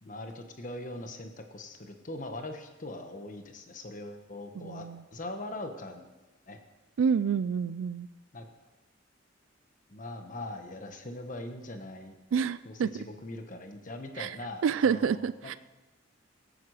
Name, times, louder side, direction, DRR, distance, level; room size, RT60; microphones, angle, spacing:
voice 1, 0.0-6.0 6.5-6.6 8.3-8.4 9.9-12.1 12.6-15.3, left 1 dB, 40° left, 6 dB, 1.3 m, -41 dB
voice 2, 4.6-5.0 7.0-8.1 12.3-13.0 14.2-14.4 14.6-15.5, right 6 dB, 85° right, 16 dB, 0.3 m, -28 dB
16.5 x 9.2 x 5.0 m, 1.1 s
head